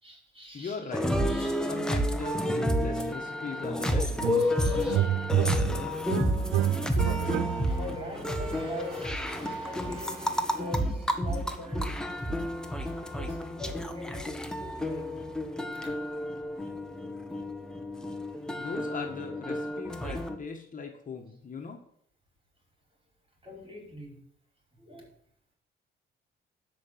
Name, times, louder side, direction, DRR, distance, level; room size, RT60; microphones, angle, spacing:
voice 1, 0.0-0.8 1.3-1.6 4.4-5.8 6.1-12.3 12.8-15.2 18.5-18.7 23.4-24.2 24.8-25.1, left 1 dB, 25° right, -1 dB, 5.5 m, -43 dB
voice 2, 0.5-1.1 1.6-4.6 18.6-21.8, left 5 dB, 40° left, 2 dB, 1.8 m, -40 dB
sound 1, 0.9-20.4, equal, 5° left, 1.3 m, -31 dB
sound 2, 4.2-4.6 4.9-8.0, right 13 dB, 80° right, 0.4 m, -29 dB
13.0 x 5.5 x 7.7 m, 0.67 s
cardioid pair, 90°, 20 cm